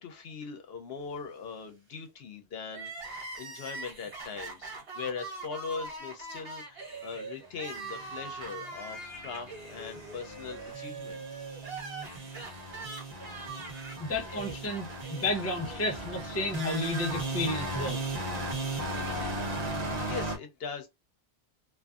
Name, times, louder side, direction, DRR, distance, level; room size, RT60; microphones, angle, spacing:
voice 1, 0.0-11.3 20.1-20.9, left 5 dB, 65° left, 0.8 m, -40 dB
Crying sobbing, 2.7-16.8 17.1-17.2 18.2-19.3, right 3 dB, 65° right, 1.2 m, -43 dB
sound 1, 8.0-20.4, right 1 dB, 40° right, 0.9 m, -37 dB
voice 2, 14.0-18.0, left 1 dB, 20° left, 0.5 m, -32 dB
2.5 x 2.4 x 2.3 m
omnidirectional pair, 1.1 m